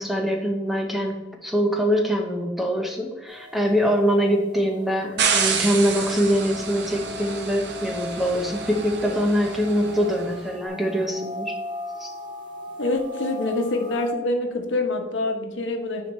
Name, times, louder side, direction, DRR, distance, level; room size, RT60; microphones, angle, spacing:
voice 1, 0.0-11.6 12.0-12.1, equal, ahead, 1 dB, 0.8 m, -23 dB
sound 1, 3.3-14.1, left 1 dB, 25° right, 1.2 m, -39 dB
sound 2, 5.2-10.3, right 5 dB, 60° right, 0.9 m, -29 dB
voice 2, 12.8-16.1, left 2 dB, 75° left, 4 dB, 1.0 m, -26 dB
9.7 x 4.6 x 3.1 m, 1.1 s
head